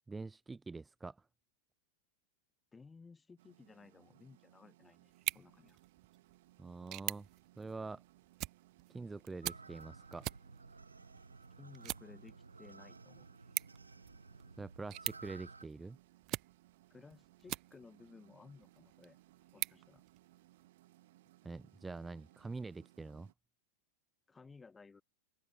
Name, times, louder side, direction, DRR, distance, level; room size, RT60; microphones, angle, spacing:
voice 1, 0.1-1.2 6.6-7.3 7.6-8.0 8.9-10.3 14.6-16.0 21.4-23.3, right 3 dB, 10° right, 0.4 m, -45 dB
voice 2, 2.7-5.8 11.6-13.3 16.9-19.2 19.5-20.0 24.3-25.0, left 4 dB, 15° left, 5.9 m, -58 dB
sound 1, 3.4-23.3, right 16 dB, 55° right, 7.0 m, -65 dB
sound 2, 5.1-18.1 18.6-20.7, right 18 dB, 35° right, 1.0 m, -46 dB
sound 3, 9.4-15.7, right 3 dB, 80° right, 2.0 m, -55 dB
open air
figure-of-eight pair, 90°, 0 cm